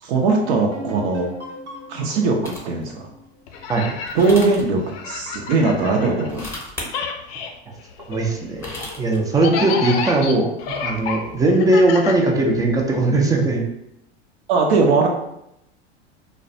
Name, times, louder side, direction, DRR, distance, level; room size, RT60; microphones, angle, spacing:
voice 1, 0.0-1.3 1.9-2.9 4.1-4.8 5.1-6.5 9.4-9.6 14.5-15.1, right 4 dB, 70° right, 1 dB, 0.5 m, -19 dB
sound 1, 0.7-4.3, left 2 dB, 90° right, 0.9 m, -38 dB
sound 2, 2.4-2.8 4.1-4.6 6.2-6.9 8.3-9.2, left 2 dB, 10° left, 0.7 m, -34 dB
sound 3, 3.5-6.6 6.8-12.8, left 6 dB, 60° left, 0.5 m, -30 dB
voice 2, 8.1-8.6 9.0-10.5 10.8-13.6, right 2 dB, 10° right, 0 dB, 0.3 m, -19 dB
2.2 x 2.1 x 2.6 m, 0.80 s
hypercardioid pair, 95°, 33 cm